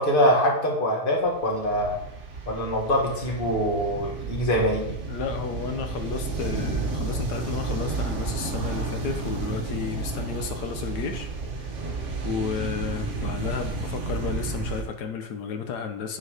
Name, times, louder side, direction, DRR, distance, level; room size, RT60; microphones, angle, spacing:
voice 1, 0.0-2.0 2.5-5.0, equal, 35° left, -1 dB, 1.7 m, -24 dB
sound 1, 1.3-14.8, right 3 dB, 50° right, 1.4 m, -31 dB
voice 2, 5.1-11.7 12.2-16.2, left 6 dB, 85° left, 6 dB, 1.4 m, -32 dB
9.5 x 4.6 x 4.9 m, 0.78 s
omnidirectional pair, 1.7 m